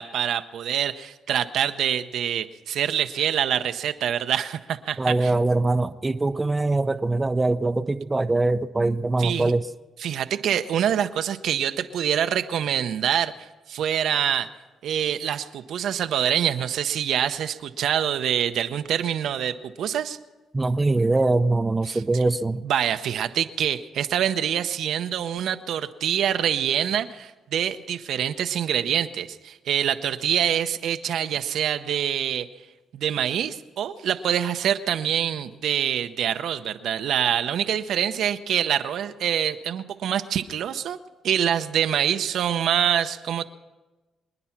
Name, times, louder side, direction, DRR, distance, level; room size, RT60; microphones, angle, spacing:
voice 1, 0.0-5.3 9.2-9.5 10.0-14.5 14.8-20.2 21.8-22.2 22.6-32.5 32.9-41.0 41.2-43.5, right 9 dB, 75° right, 9 dB, 0.7 m, -25 dB
voice 2, 5.0-9.6 20.5-22.6, right 2 dB, 20° right, 10 dB, 0.6 m, -22 dB
25.0 x 9.9 x 5.9 m, 1.2 s
cardioid pair, 90°, 0 cm